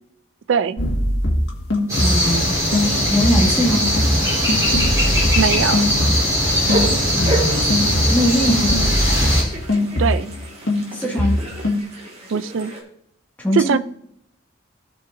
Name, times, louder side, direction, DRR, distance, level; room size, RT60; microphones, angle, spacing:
voice 1, 0.5-0.8 5.4-5.8 10.0-10.3 12.3-12.7 13.5-13.8, right 6 dB, 70° right, 14 dB, 0.4 m, -20 dB
sound 1, 0.8-6.4 6.7-10.4 10.7-11.8, left 1 dB, 65° left, 1.8 m, -22 dB
sound 2, 1.9-9.4, equal, 15° right, 3.9 m, -20 dB
voice 2, 2.0-2.6 3.1-3.9 7.1-8.8 10.9-11.4 13.4-13.8, left 1 dB, 10° left, -3 dB, 1.9 m, -22 dB
sound 3, 6.4-12.8, right 1 dB, 30° right, 2.2 m, -31 dB
16.5 x 5.6 x 2.6 m, 0.72 s
head